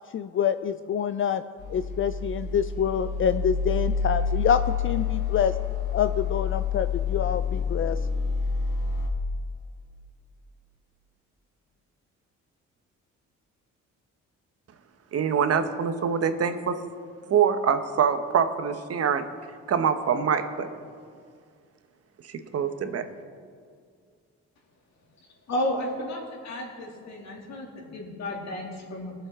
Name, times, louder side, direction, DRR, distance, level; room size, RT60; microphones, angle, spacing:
voice 1, 0.1-1.4 1.7-5.5 5.9-8.0, left 8 dB, 45° left, 11 dB, 0.4 m, -26 dB
sound 1, 1.6-9.1, left 5 dB, 90° left, 2.1 m, -28 dB
voice 2, 15.1-16.8 17.3-19.3 19.7-20.7 22.3-23.0, right 7 dB, 50° right, 9 dB, 1.0 m, -24 dB
voice 3, 25.5-29.1, left 1 dB, 65° left, -1 dB, 2.7 m, -32 dB
19.5 x 7.4 x 3.7 m, 2.1 s
cardioid pair, 90°, 30 cm